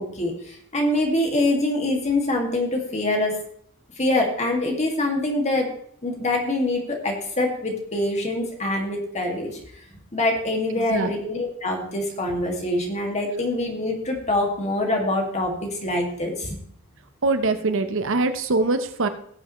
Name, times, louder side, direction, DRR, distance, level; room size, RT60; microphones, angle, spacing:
voice 1, 0.0-3.3 4.0-5.7 6.0-9.6 10.1-16.6, left 1 dB, 35° left, 1 dB, 2.2 m, -24 dB
voice 2, 10.7-11.1 17.2-19.1, right 3 dB, 65° right, 9 dB, 0.9 m, -23 dB
17.5 x 7.4 x 3.2 m, 0.65 s
head